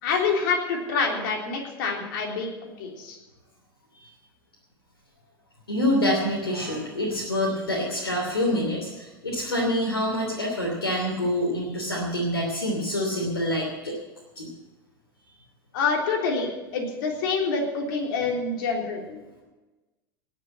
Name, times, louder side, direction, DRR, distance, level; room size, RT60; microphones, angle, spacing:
voice 1, 0.0-3.2 15.7-19.2, left 4 dB, 60° left, 1 dB, 3.6 m, -27 dB
voice 2, 5.7-13.9 14.4-14.5, left 1 dB, 85° left, -2 dB, 3.0 m, -26 dB
18.5 x 7.5 x 7.4 m, 1.1 s
figure-of-eight pair, 85°, 12 cm